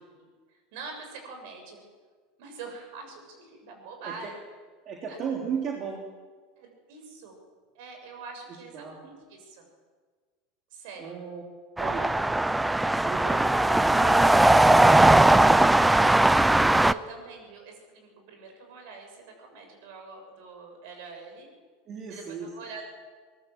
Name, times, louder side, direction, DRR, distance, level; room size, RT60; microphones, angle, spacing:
voice 1, 0.2-1.8 2.4-4.3 5.1-5.2 6.6-7.4 7.8-9.7 10.7-11.2 16.9-21.5 22.1-22.9, right 4 dB, 55° right, 4 dB, 6.9 m, -44 dB
voice 2, 4.9-6.0 8.7-9.1 11.0-11.4 11.8-12.1 13.0-13.4 13.7-16.2 21.9-22.5, right 6 dB, 35° right, 0 dB, 3.5 m, -36 dB
sound 1, 11.8-16.9, right 2 dB, 5° right, 0.6 m, -19 dB
23.0 x 20.0 x 7.7 m, 1.5 s
figure-of-eight pair, 75°, 0 cm